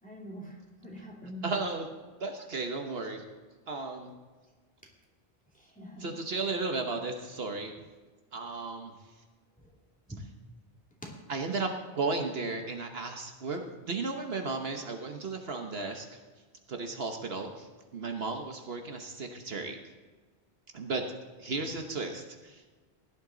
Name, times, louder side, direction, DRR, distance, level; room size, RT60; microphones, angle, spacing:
voice 1, 0.0-1.5 5.6-6.1 9.6-9.7 10.1-10.2 11.0-11.1, equal, 5° left, -2 dB, 2.6 m, -44 dB
voice 2, 1.4-1.9 2.2-3.2 3.7-4.1 6.0-7.7 8.3-8.9 11.3-16.2 16.7-17.7 17.9-19.8 20.7-21.0 21.4-22.6, right 3 dB, 65° right, 4 dB, 1.3 m, -34 dB
16.5 x 11.5 x 3.9 m, 1.4 s
omnidirectional pair, 1.1 m